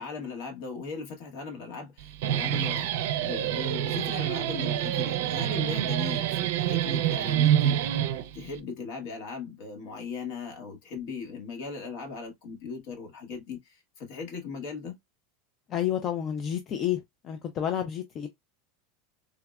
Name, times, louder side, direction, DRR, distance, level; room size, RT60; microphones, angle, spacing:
voice 1, 0.0-2.9 3.1-7.8 8.3-14.9, left 5 dB, 60° left, 1.1 m, -38 dB
Guitar, 2.0-8.6, right 11 dB, 75° right, 0.4 m, -27 dB
voice 2, 15.7-18.3, left 10 dB, 35° left, 0.4 m, -30 dB
3.4 x 2.1 x 2.3 m
supercardioid pair, 145°, 0 cm